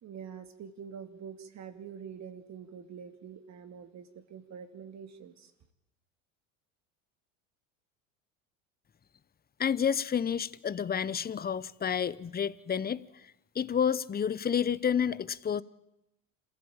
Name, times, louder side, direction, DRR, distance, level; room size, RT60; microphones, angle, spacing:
voice 1, 0.0-5.5, right 7 dB, 45° right, 2.6 m, -45 dB
voice 2, 9.6-13.0 13.5-15.6, left 7 dB, 25° left, 0.9 m, -29 dB
27.0 x 15.5 x 8.9 m
supercardioid pair, 90°, 38 cm